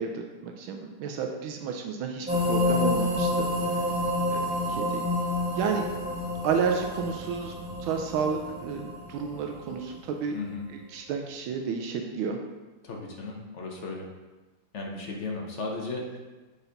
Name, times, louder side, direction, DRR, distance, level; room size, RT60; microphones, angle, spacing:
voice 1, 0.0-3.5 4.3-5.0 5.6-5.9 6.4-7.5 7.8-10.4 10.9-12.4, right 6 dB, 80° right, 3 dB, 1.4 m, -31 dB
sound 1, 2.3-10.0, left 2 dB, 5° right, 0.8 m, -29 dB
voice 2, 12.8-14.1 14.7-16.2, left 3 dB, 55° left, -1 dB, 0.8 m, -35 dB
6.8 x 4.1 x 3.9 m, 1.2 s
omnidirectional pair, 2.2 m